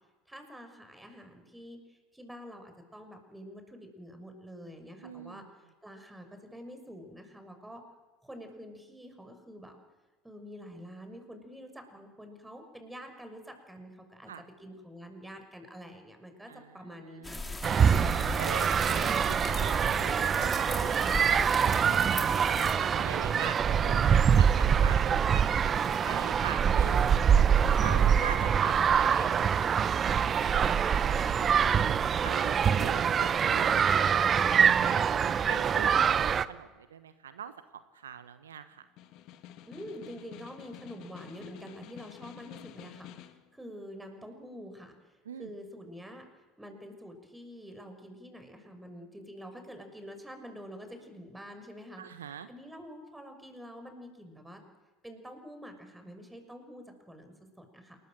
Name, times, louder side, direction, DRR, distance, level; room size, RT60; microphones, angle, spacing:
voice 1, 0.3-7.8 8.2-9.8 10.2-14.3 14.6-17.9 30.9-31.9 39.7-52.0 52.5-54.6 55.0-58.0, equal, 5° right, 6 dB, 6.2 m, -47 dB
voice 2, 5.0-5.5 14.3-14.4 16.5-16.7 17.0-17.9 18.4-27.0 27.8-29.4 32.2-34.2 34.6-38.8 45.2-45.5 52.0-52.5, right 8 dB, 80° right, 11 dB, 1.2 m, -43 dB
sound 1, 17.2-22.7, left 2 dB, 10° left, 4.5 m, -38 dB
sound 2, 17.6-36.4, right 7 dB, 35° right, 1.0 m, -25 dB
Snare drum, 38.8-43.5, left 12 dB, 55° left, 2.1 m, -49 dB
28.0 x 21.5 x 7.8 m, 1.2 s
figure-of-eight pair, 70°, 0 cm